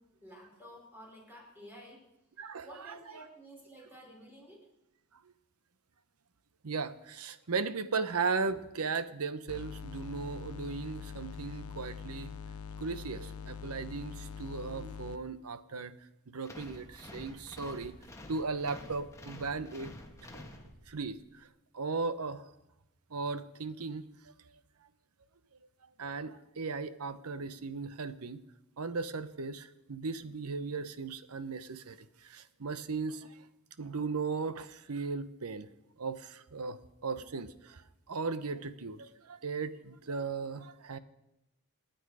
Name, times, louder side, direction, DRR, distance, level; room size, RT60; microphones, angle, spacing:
voice 1, 0.0-2.0 2.4-4.7, equal, 10° right, -2 dB, 4.8 m, -52 dB
voice 2, 2.4-2.9 6.6-12.3 12.8-15.9 16.3-17.9 18.3-19.9 20.3-20.4 20.9-21.5 21.7-22.4 23.1-24.1 26.0-28.4 28.8-32.0 32.2-33.4 33.8-35.7 36.0-37.8 38.1-41.0, right 4 dB, 90° right, 13 dB, 0.9 m, -37 dB
sound 1, 9.5-15.2, left 6 dB, 80° left, 0.6 m, -43 dB
sound 2, 16.4-21.1, left 1 dB, 15° left, 1.5 m, -49 dB
27.5 x 9.1 x 4.9 m, 0.89 s
head